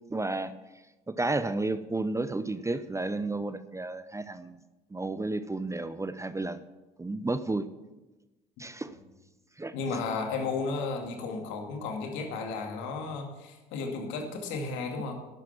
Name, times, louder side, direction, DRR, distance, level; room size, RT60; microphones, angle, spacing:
voice 1, 0.1-0.5 1.1-4.6 4.9-6.6 7.0-7.7 8.6-8.9 9.6-10.0 15.0-15.1, right 2 dB, 15° right, 13 dB, 0.7 m, -32 dB
voice 2, 9.7-15.1, left 4 dB, 65° left, 3 dB, 2.4 m, -34 dB
12.0 x 9.2 x 7.3 m, 1.1 s
figure-of-eight pair, 55°, 21 cm